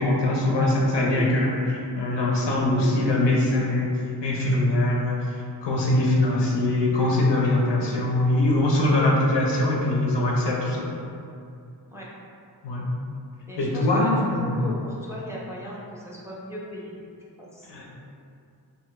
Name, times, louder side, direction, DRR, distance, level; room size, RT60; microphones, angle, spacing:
voice 1, 0.0-3.9 4.2-5.2 5.6-10.8 12.6-12.8 13.6-14.7 17.7-17.8, left 1 dB, 90° left, -2 dB, 0.6 m, -22 dB
voice 2, 13.5-17.0 17.4-17.7, left 1 dB, 5° right, -5 dB, 0.4 m, -38 dB
2.7 x 2.3 x 3.0 m, 2.5 s
wide cardioid pair, 105°, 41 cm